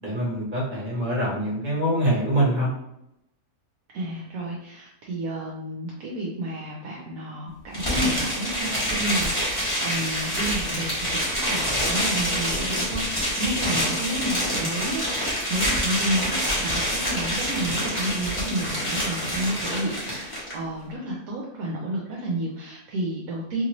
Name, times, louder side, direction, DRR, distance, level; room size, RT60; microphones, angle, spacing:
voice 1, 0.0-2.7, right 1 dB, 35° right, -5 dB, 1.2 m, -24 dB
voice 2, 3.9-13.1 13.4-23.6, right 1 dB, 70° right, -3 dB, 1.0 m, -31 dB
sound 1, 7.7-20.5, equal, 15° left, 1.0 m, -26 dB
2.9 x 2.7 x 2.9 m, 0.80 s
omnidirectional pair, 1.6 m